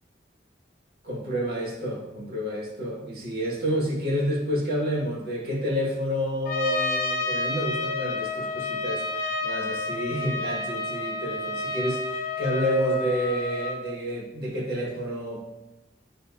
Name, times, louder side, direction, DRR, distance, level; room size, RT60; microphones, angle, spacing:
voice 1, 1.0-15.4, equal, 60° right, -3 dB, 1.9 m, -29 dB
Trumpet, 6.5-13.8, left 3 dB, 55° left, 1.1 m, -30 dB
11.5 x 3.9 x 2.6 m, 0.94 s
head